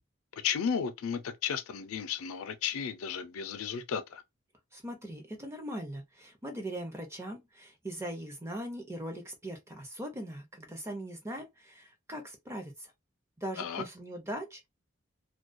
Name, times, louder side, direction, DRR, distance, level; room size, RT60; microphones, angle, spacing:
voice 1, 0.4-4.2 13.6-13.8, left 7 dB, 80° left, 0.4 m, -34 dB
voice 2, 4.7-12.9 13.4-14.7, right 1 dB, 10° right, 0.5 m, -40 dB
2.3 x 2.2 x 2.5 m
head